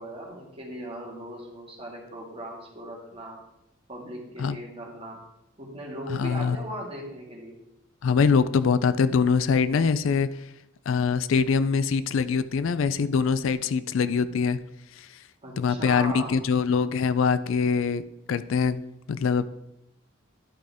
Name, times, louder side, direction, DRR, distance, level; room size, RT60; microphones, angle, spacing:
voice 1, 0.0-3.4 3.9-5.2 5.6-7.6 15.4-16.3, right 1 dB, 30° right, -2 dB, 1.9 m, -38 dB
voice 2, 6.1-6.6 8.0-10.3 10.9-14.6 15.0-15.1 15.6-18.0 18.3-19.5, left 5 dB, 75° left, 14 dB, 0.4 m, -23 dB
11.5 x 5.1 x 3.5 m, 0.86 s
head